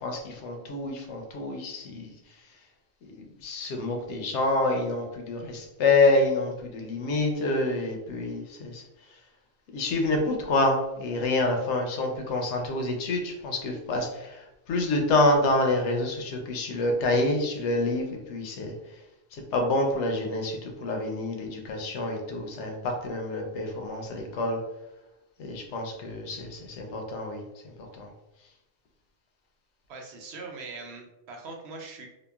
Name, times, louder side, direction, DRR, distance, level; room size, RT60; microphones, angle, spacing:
voice 1, 0.0-2.1 3.0-8.8 9.7-18.7 19.3-24.6 25.4-28.1, left 2 dB, 90° left, 3 dB, 0.9 m, -27 dB
voice 2, 29.9-32.1, right 3 dB, 70° right, 1 dB, 0.8 m, -41 dB
2.8 x 2.3 x 2.3 m, 0.96 s
omnidirectional pair, 1.1 m